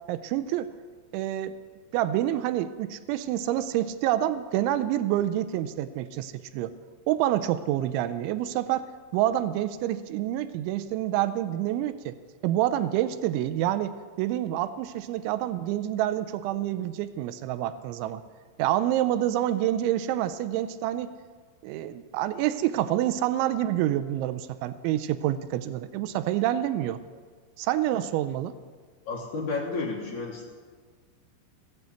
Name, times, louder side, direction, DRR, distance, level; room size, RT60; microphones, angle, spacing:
voice 1, 0.1-0.7 1.1-1.5 1.9-6.7 7.1-8.9 9.1-12.2 12.4-18.2 18.6-21.1 21.6-27.0 27.6-28.6, right 12 dB, 85° right, 12 dB, 2.7 m, -27 dB
voice 2, 29.0-30.5, left 3 dB, 85° left, -3 dB, 1.6 m, -31 dB
16.0 x 9.1 x 8.2 m, 1.5 s
omnidirectional pair, 5.9 m